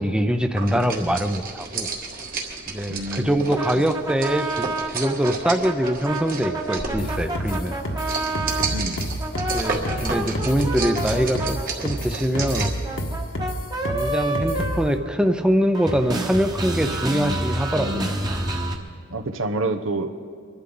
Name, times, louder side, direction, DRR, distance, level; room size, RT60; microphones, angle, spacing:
voice 1, 0.0-1.9 2.7-7.8 9.5-12.7 13.9-18.0, equal, 5° right, 7 dB, 0.5 m, -23 dB
sound 1, 0.6-12.8, right 4 dB, 45° right, 1.6 m, -32 dB
voice 2, 2.9-3.4 3.8-3.9 8.7-9.0 19.1-20.1, right 2 dB, 80° right, 7 dB, 0.9 m, -28 dB
sound 2, 3.5-8.7 9.2-15.5 15.7-18.8, right 1 dB, 20° right, 1.1 m, -29 dB
sound 3, 7.0-14.9, equal, 75° left, 1.5 m, -29 dB
24.5 x 12.0 x 3.9 m, 2.1 s
head